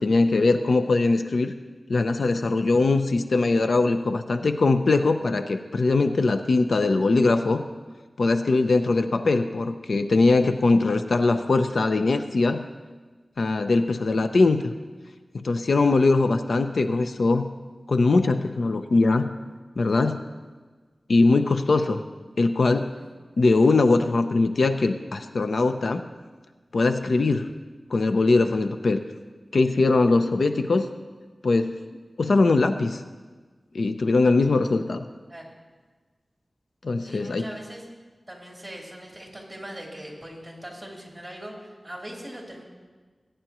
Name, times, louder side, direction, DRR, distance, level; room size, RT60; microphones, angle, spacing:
voice 1, 0.0-1.6 1.9-7.6 8.2-12.6 13.4-14.7 15.3-17.4 17.9-19.3 19.8-20.2 21.1-22.0 22.4-22.9 23.4-26.0 26.7-27.5 27.9-29.0 29.5-30.9 31.4-31.7 32.2-33.0 33.7-35.0 36.8-37.5, left 3 dB, 80° left, 8 dB, 0.5 m, -21 dB
voice 2, 37.0-37.9 38.3-42.6, right 1 dB, 10° right, -3 dB, 3.5 m, -40 dB
19.0 x 10.0 x 3.0 m, 1.4 s
wide cardioid pair, 80°, 0 cm